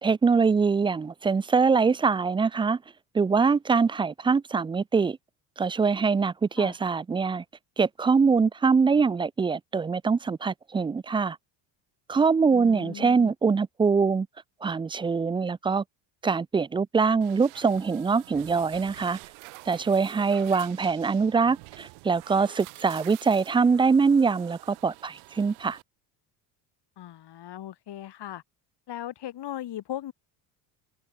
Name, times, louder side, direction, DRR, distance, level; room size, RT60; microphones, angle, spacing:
voice 1, 0.0-2.8 3.1-5.2 5.6-7.4 7.8-11.4 12.1-14.3 14.6-15.8 16.2-19.2 19.7-25.8, right 5 dB, 10° right, 0.3 m, -23 dB
voice 2, 12.5-13.3 27.0-28.4 28.9-30.1, left 12 dB, 55° left, 7.4 m, -38 dB
sound 1, 17.2-25.8, right 31 dB, 80° right, 1.9 m, -47 dB
supercardioid pair, 90°, 48 cm